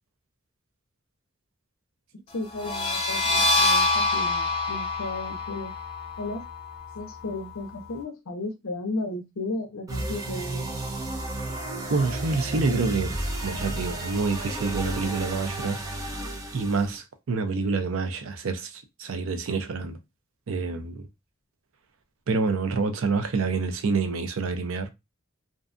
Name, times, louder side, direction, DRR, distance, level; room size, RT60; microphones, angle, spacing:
voice 1, 2.3-5.7 6.2-6.4 6.9-10.7, left 2 dB, 75° left, 0.6 m, -34 dB
sound 1, 2.5-8.0, left 2 dB, 25° left, 0.6 m, -26 dB
sound 2, 9.9-17.0, right 1 dB, 15° right, 0.6 m, -32 dB
voice 2, 11.9-13.2 13.4-15.8 16.5-20.0 20.5-21.1 22.3-24.9, right 4 dB, 75° right, 0.5 m, -27 dB
2.6 x 2.2 x 2.5 m
head